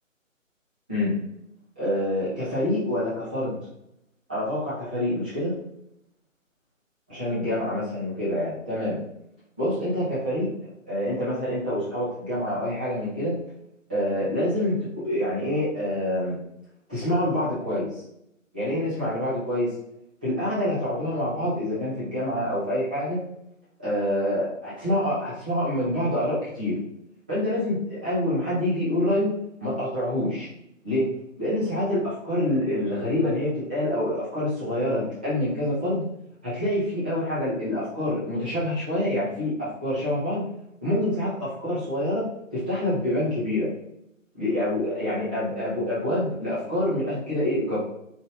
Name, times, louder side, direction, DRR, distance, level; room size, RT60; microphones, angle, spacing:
voice 1, 1.8-3.6 4.3-5.6 7.1-9.0 9.6-10.5 10.9-13.4 13.9-16.4 16.9-17.9 18.5-19.8 20.2-23.2 23.8-26.8 27.3-30.5 30.8-36.0 36.4-40.5 40.8-43.7 44.4-47.8, left 1 dB, 5° right, -12 dB, 0.6 m, -26 dB
4.3 x 3.6 x 3.3 m, 0.78 s
figure-of-eight pair, 150°, 40 cm